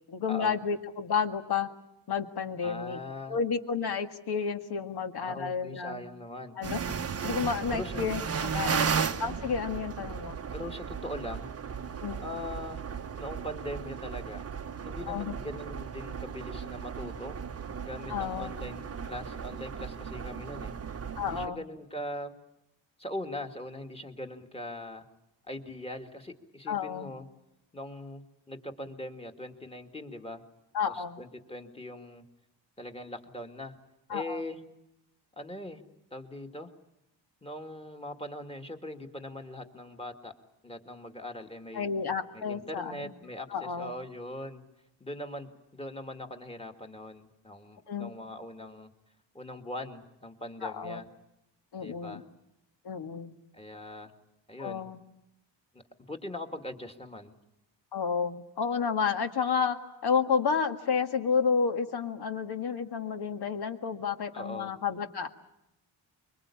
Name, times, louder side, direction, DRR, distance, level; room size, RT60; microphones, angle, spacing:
voice 1, 0.1-1.7 2.1-3.0 3.3-6.0 6.6-7.0 7.2-8.9 9.2-10.4 12.0-12.2 15.1-15.3 18.1-18.6 21.2-21.6 26.7-27.1 30.7-31.2 34.1-34.4 41.7-43.1 43.5-43.9 47.9-48.1 50.6-51.0 51.7-52.2 52.9-53.3 54.6-55.0 57.9-59.8 60.0-65.3, left 6 dB, 55° left, 7 dB, 1.9 m, -31 dB
voice 2, 2.6-3.4 5.2-6.5 7.7-8.0 8.6-8.9 10.5-11.5 12.2-12.8 13.2-14.5 14.8-17.4 17.8-20.7 21.2-22.3 23.0-25.1 25.5-27.3 27.7-30.4 30.9-32.2 32.8-33.8 34.1-34.6 35.4-35.8 36.1-36.7 37.4-40.3 40.6-41.9 42.3-44.6 45.0-48.9 49.3-51.1 51.8-52.2 53.5-54.1 54.5-54.9 56.0-57.3 64.3-64.7, left 1 dB, 15° left, 4 dB, 2.2 m, -41 dB
sound 1, 6.6-21.5, right 6 dB, 30° right, 1.0 m, -35 dB
25.0 x 23.0 x 8.6 m, 0.86 s
cardioid pair, 100°, 45 cm